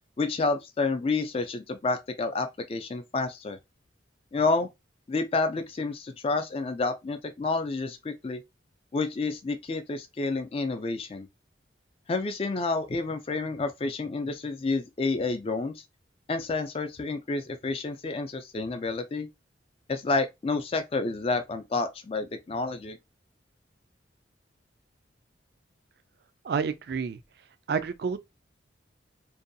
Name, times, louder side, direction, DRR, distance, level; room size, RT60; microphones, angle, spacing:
voice 1, 0.2-3.6 4.3-4.7 5.1-8.4 8.9-11.3 12.1-15.7 16.3-19.3 19.9-23.0, left 3 dB, 30° left, 0.3 m, -29 dB
voice 2, 26.4-27.2 27.7-28.2, right 5 dB, 55° right, 0.3 m, -29 dB
2.6 x 2.3 x 2.6 m
head